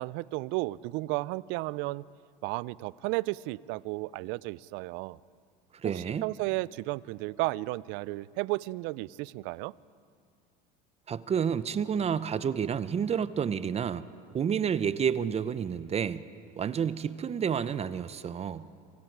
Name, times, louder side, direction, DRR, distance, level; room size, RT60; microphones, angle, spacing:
voice 1, 0.0-2.1 2.4-5.2 5.9-9.7, right 21 dB, 65° right, 22 dB, 0.5 m, -33 dB
voice 2, 5.8-6.3 11.1-14.1 14.3-16.2 16.6-18.7, right 7 dB, 30° right, 15 dB, 0.8 m, -30 dB
27.0 x 25.0 x 4.8 m, 2.3 s
hypercardioid pair, 90°, 21 cm